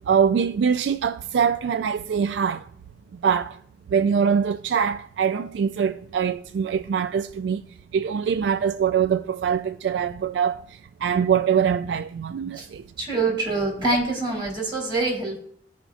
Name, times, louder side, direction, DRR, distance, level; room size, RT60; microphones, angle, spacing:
voice 1, 0.1-2.6 3.2-3.5 3.9-7.6 7.9-10.6 11.0-12.8, right 7 dB, 70° right, 0.3 m, -23 dB
voice 2, 13.0-15.4, right 3 dB, 25° right, 3.5 m, -25 dB
15.0 x 5.0 x 2.4 m
head